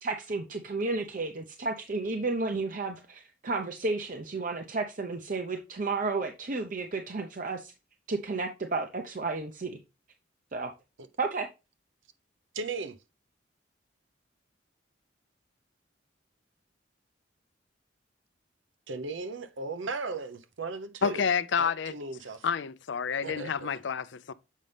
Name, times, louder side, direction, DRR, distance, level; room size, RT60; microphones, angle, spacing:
voice 1, 0.0-7.7 8.1-9.8 10.5-10.7 11.2-11.5, right 3 dB, 45° right, 0.7 m, -32 dB
voice 2, 12.5-13.0 18.9-21.2 21.6-22.5 23.2-23.7, right 3 dB, 80° right, 0.8 m, -36 dB
voice 3, 21.0-21.9 22.4-24.3, left 6 dB, 70° left, 0.5 m, -29 dB
7.3 x 5.3 x 3.3 m
head